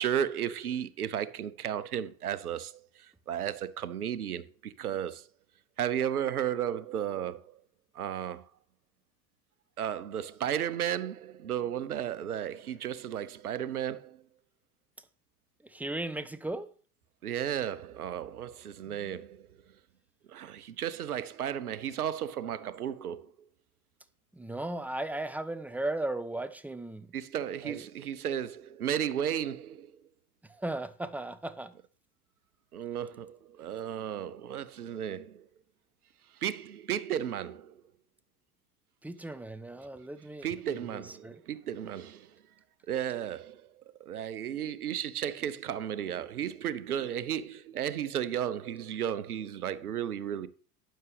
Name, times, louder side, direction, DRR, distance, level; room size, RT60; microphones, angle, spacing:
voice 1, 0.0-5.3 5.8-7.6 7.9-8.5 9.8-14.2 17.2-19.5 20.3-23.3 27.1-29.9 32.7-35.5 36.3-37.8 40.4-42.4 42.9-50.5, right 9 dB, 75° right, 0.9 m, -34 dB
voice 2, 15.6-16.7 24.3-27.1 27.6-27.8 30.4-31.7 39.0-41.4, right 2 dB, 5° right, 0.8 m, -37 dB
12.0 x 8.9 x 3.4 m
figure-of-eight pair, 75°, 45 cm